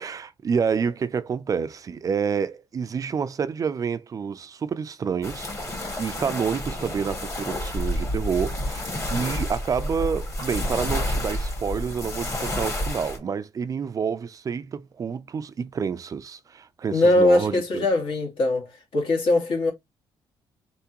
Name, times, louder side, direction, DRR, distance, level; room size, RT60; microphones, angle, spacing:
voice 1, 0.0-17.9, right 6 dB, 35° right, 0.4 m, -28 dB
sound 1, 5.2-13.2, left 1 dB, 30° left, 1.6 m, -29 dB
voice 2, 16.9-19.7, left 2 dB, 60° left, 1.9 m, -21 dB
3.7 x 3.5 x 2.9 m
cardioid pair, 115°, 10 cm